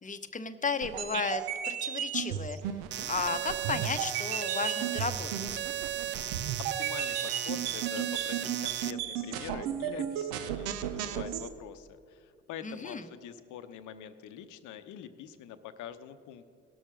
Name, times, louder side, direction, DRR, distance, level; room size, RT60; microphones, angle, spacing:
voice 1, 0.0-2.6 3.1-5.6 12.6-13.0, left 4 dB, 25° left, 10 dB, 0.9 m, -34 dB
sound 1, 0.8-11.5, right 10 dB, 85° right, 0.6 m, -35 dB
sound 2, 2.9-8.9, right 11 dB, 35° right, 0.4 m, -36 dB
voice 2, 6.6-16.5, left 9 dB, 70° left, 11 dB, 0.8 m, -44 dB
17.5 x 6.3 x 5.1 m, 2.3 s
hypercardioid pair, 45°, 32 cm